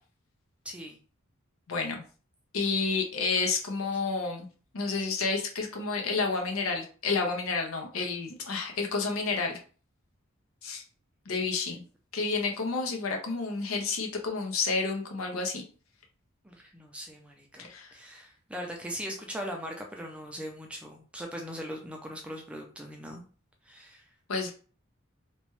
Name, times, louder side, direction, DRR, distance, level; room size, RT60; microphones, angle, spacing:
voice 1, 0.6-1.0 11.7-11.8 16.4-23.2 23.7-24.1, equal, 5° right, 1 dB, 0.4 m, -40 dB
voice 2, 1.7-2.0 2.5-4.5 4.7-9.6 10.6-10.8 11.3-11.8 12.1-15.6 17.6-17.9 24.3-24.5, left 4 dB, 80° left, 2 dB, 0.7 m, -30 dB
2.9 x 2.2 x 3.0 m, 0.39 s
head